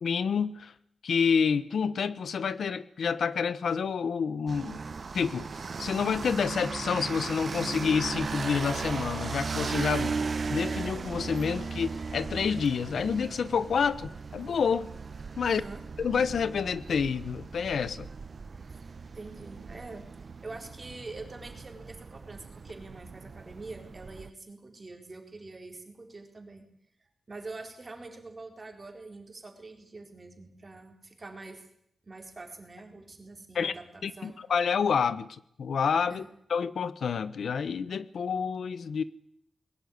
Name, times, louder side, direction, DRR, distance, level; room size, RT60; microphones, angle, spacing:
voice 1, 0.0-0.7 1.0-4.8 5.1-5.5 5.8-10.2 10.5-14.9 15.4-15.6 16.0-18.1 33.5-33.7 34.0-36.2 36.5-39.0, left 6 dB, 85° left, 15 dB, 1.0 m, -28 dB
sound 1, 4.5-24.3, right 4 dB, 45° right, 0.9 m, -37 dB
voice 2, 15.4-15.8 18.7-18.8 19.1-20.1 20.4-26.7 27.3-31.6 32.0-34.3 36.1-36.3, right 3 dB, 30° right, 4 dB, 4.2 m, -45 dB
21.5 x 18.5 x 9.6 m, 0.71 s
wide cardioid pair, 180°, 0 cm